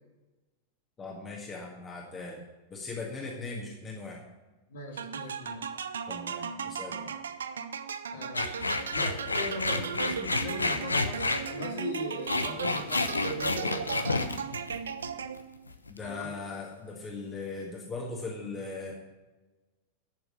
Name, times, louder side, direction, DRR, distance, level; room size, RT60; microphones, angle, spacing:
voice 1, 1.0-2.4 2.7-4.2 6.1-7.2 15.9-18.9, left 3 dB, 20° left, -1 dB, 1.8 m, -39 dB
voice 2, 4.7-5.8 8.1-8.6 8.9-14.3 16.0-16.3, left 2 dB, 60° left, 2 dB, 2.0 m, -40 dB
sound 1, 5.0-15.6, right 6 dB, 70° right, 0.6 m, -37 dB
sound 2, 8.3-11.4 12.0-15.4 15.7-16.1, left 3 dB, 80° left, 0.7 m, -30 dB
11.0 x 7.0 x 6.3 m, 1.2 s
figure-of-eight pair, 90°, 0 cm